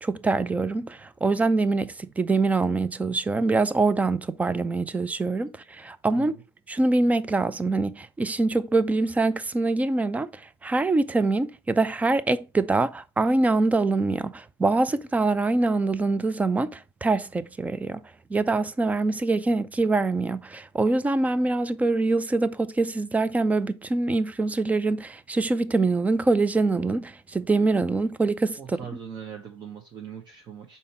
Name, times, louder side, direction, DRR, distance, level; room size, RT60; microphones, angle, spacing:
voice 1, 0.0-6.3 6.7-18.0 18.3-28.8, right 3 dB, 10° right, 0.4 m, -24 dB
voice 2, 28.6-30.8, right 8 dB, 30° right, 0.9 m, -41 dB
5.5 x 4.2 x 4.3 m
hypercardioid pair, 95°, 14 cm